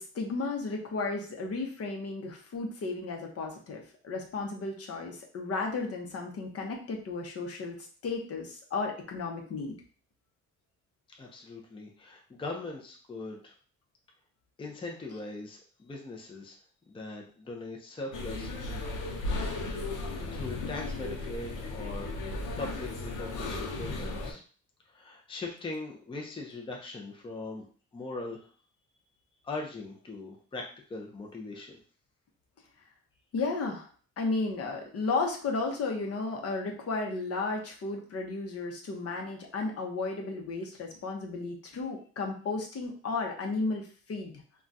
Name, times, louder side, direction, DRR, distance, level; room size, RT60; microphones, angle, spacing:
voice 1, 0.0-9.8 33.3-33.9 34.2-44.3, left 3 dB, 50° left, 1 dB, 0.8 m, -34 dB
voice 2, 11.1-13.5 14.6-16.6 16.9-19.0 20.3-22.1 22.6-24.4 24.9-27.7 27.9-28.5 29.4-31.8, left 2 dB, 15° left, 0 dB, 0.5 m, -40 dB
sound 1, 18.1-24.3, left 2 dB, 90° left, 0.7 m, -35 dB
2.3 x 2.2 x 3.9 m, 0.42 s
cardioid pair, 90°, 30 cm